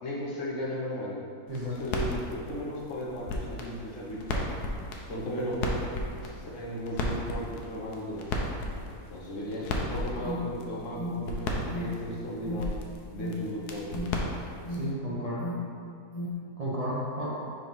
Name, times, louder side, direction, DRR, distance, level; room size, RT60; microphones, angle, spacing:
voice 1, 0.0-1.2 1.6-4.6 5.1-5.8 6.2-8.3 9.1-12.8 13.1-14.3, equal, 55° left, -5 dB, 1.2 m, -36 dB
sound 1, 1.5-14.9, left 1 dB, 80° left, 1.2 m, -36 dB
Alarm, 9.6-16.3, left 2 dB, 20° left, 1.3 m, -37 dB
voice 2, 14.7-15.5 16.6-17.3, equal, 35° right, -8 dB, 0.7 m, -32 dB
4.7 x 3.8 x 5.3 m, 2.4 s
omnidirectional pair, 1.7 m